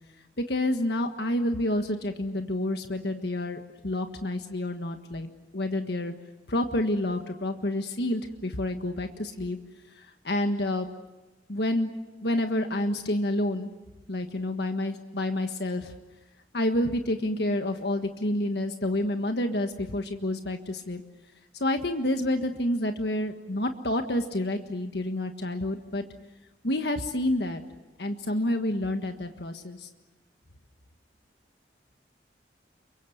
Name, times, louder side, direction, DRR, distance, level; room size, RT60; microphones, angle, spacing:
voice 1, 0.4-6.1 6.5-9.6 10.0-10.9 11.5-11.9 12.2-13.7 14.1-15.9 16.5-21.0 21.5-26.0 26.6-27.6 28.0-29.9, left 1 dB, 65° left, 6 dB, 1.5 m, -29 dB
28.5 x 24.0 x 8.0 m, 1.1 s
head